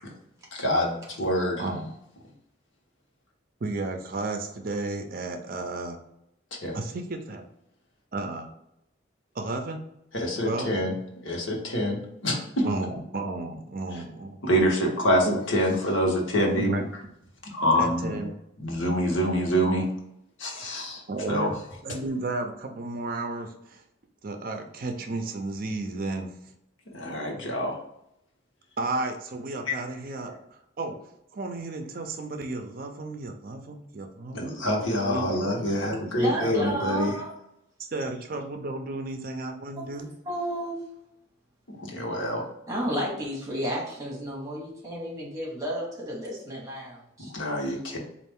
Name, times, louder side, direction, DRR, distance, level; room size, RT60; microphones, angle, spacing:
voice 1, 0.5-1.6 6.6-6.8 10.1-10.9 11.2-12.7 14.4-16.8 17.4-18.2 18.6-19.9 20.4-21.0 21.3-21.5 26.9-27.8 29.7-29.8 34.3-37.1 41.8-42.4 47.3-48.0, equal, 85° left, -1 dB, 1.1 m, -26 dB
voice 2, 3.6-6.0 6.7-7.4 8.1-8.5 9.3-9.8 10.4-10.7 12.6-14.4 15.3-15.4 16.5-16.8 17.8-18.3 20.6-20.7 21.1-21.5 21.8-23.8 24.2-26.3 27.3-27.5 28.8-30.4 30.8-31.0 31.3-34.6 35.1-36.0 36.4-36.9 37.9-40.1, right 2 dB, 45° right, 5 dB, 0.4 m, -33 dB
voice 3, 36.2-37.3 39.8-39.9 40.3-40.8 42.7-47.3, equal, 20° right, -3 dB, 1.2 m, -32 dB
4.2 x 2.5 x 3.5 m, 0.79 s
head